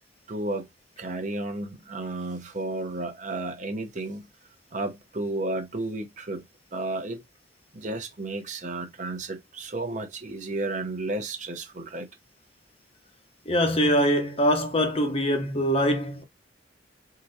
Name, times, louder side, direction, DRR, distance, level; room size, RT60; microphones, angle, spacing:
voice 1, 0.3-0.6 1.0-4.3 4.7-6.4 6.7-7.2 7.7-12.1, right 2 dB, 40° right, 0.8 m, -32 dB
voice 2, 13.5-16.2, equal, 30° left, 0.8 m, -23 dB
4.4 x 3.8 x 2.6 m
head